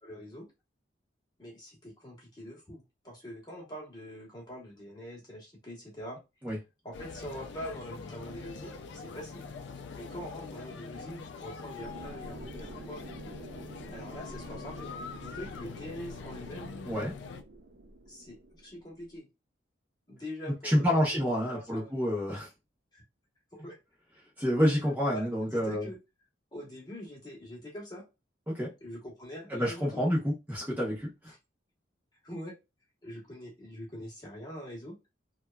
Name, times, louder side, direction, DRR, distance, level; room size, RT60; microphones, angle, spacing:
voice 1, 0.0-0.5 1.4-6.2 6.8-9.5 9.9-13.1 13.9-14.9 15.2-16.8 18.1-19.3 20.1-21.2 21.5-21.9 22.9-23.0 23.5-23.8 25.1-26.0 26.5-28.1 28.8-30.0 32.2-32.5 33.0-35.0, equal, 20° left, 1.0 m, -43 dB
sound 1, 6.9-17.4, left 4 dB, 70° left, 0.3 m, -44 dB
sound 2, 11.8-19.2, right 1 dB, 55° right, 0.5 m, -48 dB
voice 2, 20.6-22.5 24.4-25.9 28.5-28.7 29.5-31.1, equal, 10° right, 0.8 m, -28 dB
2.8 x 2.3 x 2.2 m
head